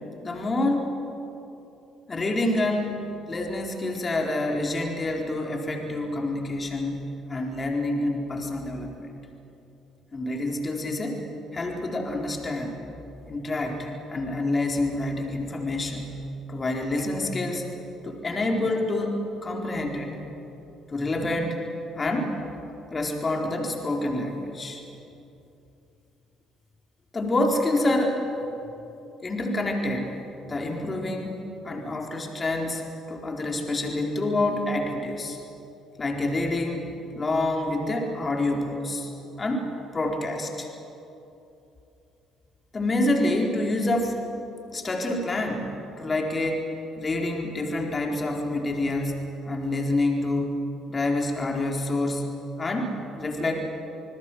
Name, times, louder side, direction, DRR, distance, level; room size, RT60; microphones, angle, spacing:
voice 1, 0.2-0.9 2.1-9.1 10.1-11.2 11.5-12.8 13.3-16.1 16.5-17.7 18.0-20.2 20.9-21.6 21.9-22.4 22.9-24.8 27.1-28.2 29.2-30.1 30.5-31.4 31.6-32.8 33.1-35.4 36.0-39.1 39.4-39.7 39.9-40.7 42.7-44.2 44.7-46.7 47.0-50.5 50.9-52.2 52.6-53.6, left 2 dB, 30° left, 1 dB, 4.2 m, -27 dB
26.5 x 20.5 x 7.9 m, 2.9 s
hypercardioid pair, 50°, 0 cm